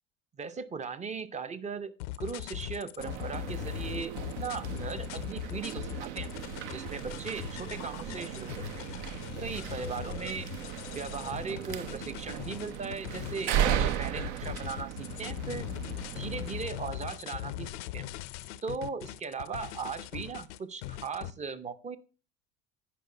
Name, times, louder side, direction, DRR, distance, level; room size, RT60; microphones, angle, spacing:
voice 1, 0.4-6.3 6.7-8.9 9.4-10.5 10.9-15.7 16.2-18.1 18.6-22.0, right 5 dB, 20° right, 12 dB, 0.6 m, -38 dB
sound 1, 2.0-21.3, left 15 dB, 65° left, 0.6 m, -40 dB
sound 2, 3.0-16.6, right 10 dB, 65° right, 0.8 m, -36 dB
10.0 x 5.1 x 4.8 m, 0.37 s
hypercardioid pair, 75°, 38 cm